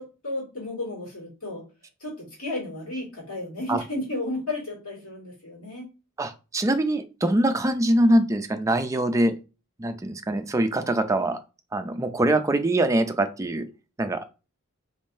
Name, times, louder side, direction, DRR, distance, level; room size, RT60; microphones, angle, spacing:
voice 1, 0.0-1.6 2.0-5.9, left 2 dB, 90° left, -4 dB, 2.1 m, -33 dB
voice 2, 6.2-9.3 9.8-11.4 11.7-13.7 14.0-14.3, right 1 dB, 15° right, 8 dB, 0.4 m, -23 dB
3.5 x 3.0 x 2.6 m, 0.31 s
head